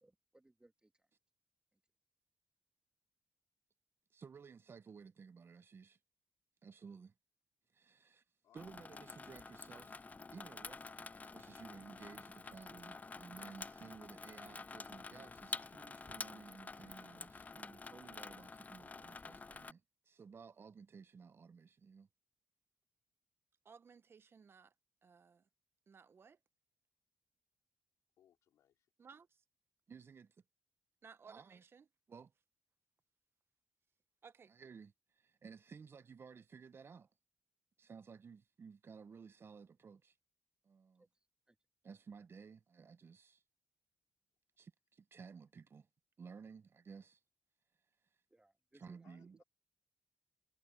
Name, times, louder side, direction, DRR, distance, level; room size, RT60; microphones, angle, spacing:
voice 1, 0.0-1.1 1.7-1.8 41.0-41.1 41.5-41.6 48.3-49.1, right 2 dB, 15° right, 2.4 m, -68 dB
voice 2, 4.1-6.0 6.6-7.1 7.7-8.2 8.5-10.1 10.3-19.8 20.1-22.1 23.6-24.7 25.0-25.4 25.9-26.4 29.0-29.3 29.9-30.3 31.0-32.3 34.2-37.1 37.8-40.1 40.6-41.0 41.8-43.4 44.6-45.9 46.2-47.2 48.7-49.4, right 5 dB, 50° right, 1.1 m, -56 dB
voice 3, 8.4-9.4 28.2-28.9 49.0-49.4, left 10 dB, 80° left, 4.1 m, -71 dB
Water tap faucet / Sink (filling or washing), 8.6-19.7, left 4 dB, 30° left, 0.5 m, -49 dB
supercardioid pair, 55°, 5 cm